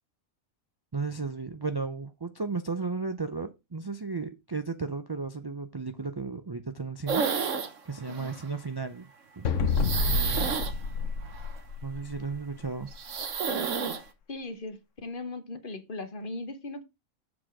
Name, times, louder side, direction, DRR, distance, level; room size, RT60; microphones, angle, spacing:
voice 1, 0.9-9.1 9.4-9.5 10.1-10.6 11.8-12.9, right 4 dB, 40° right, 0.3 m, -34 dB
sound 1, 7.1-7.8 8.1-8.5 9.7-11.6 12.9-14.0, right 6 dB, 70° right, 1.4 m, -30 dB
sound 2, 9.4-12.1, left 4 dB, 70° left, 1.3 m, -28 dB
voice 2, 14.3-16.8, left 2 dB, 45° left, 1.1 m, -38 dB
7.6 x 4.1 x 6.1 m
omnidirectional pair, 1.4 m